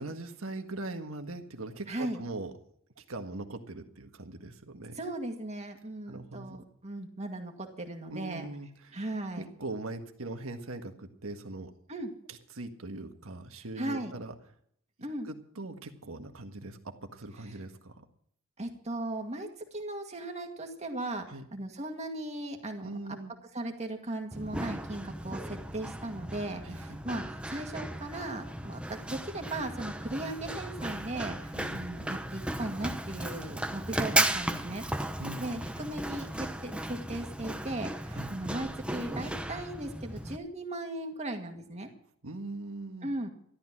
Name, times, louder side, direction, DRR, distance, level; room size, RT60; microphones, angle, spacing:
voice 1, 0.0-2.5 3.0-5.0 6.1-6.6 8.1-8.9 9.3-11.7 12.3-14.3 15.3-18.0 21.3-21.5 22.8-23.3 26.6-27.0 31.5-31.9 35.2-35.5 38.1-38.3 42.2-43.1, right 2 dB, 80° right, 6 dB, 1.7 m, -41 dB
voice 2, 1.9-2.2 4.9-8.5 8.9-9.4 11.9-12.1 13.8-14.1 15.0-15.3 18.6-23.2 23.5-34.8 35.4-41.9 43.0-43.3, right 1 dB, 30° right, 3 dB, 2.1 m, -37 dB
Run, 24.3-40.4, right 1 dB, 5° right, 0.9 m, -35 dB
13.5 x 12.5 x 6.0 m, 0.67 s
head